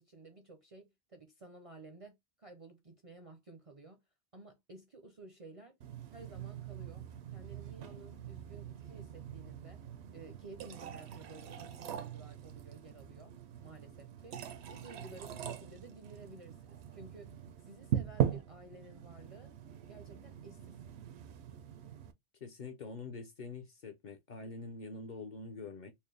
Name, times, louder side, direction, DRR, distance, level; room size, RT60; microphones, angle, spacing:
voice 1, 0.0-4.0 4.3-5.8 6.1-7.1 7.3-9.8 10.1-13.3 13.6-17.4 17.6-19.5 19.9-20.8, right 3 dB, 40° right, 0.5 m, -53 dB
sound 1, 5.8-22.1, right 9 dB, 75° right, 0.8 m, -41 dB
voice 2, 22.4-25.9, left 3 dB, 50° left, 0.7 m, -45 dB
4.2 x 2.1 x 3.2 m
omnidirectional pair, 1.2 m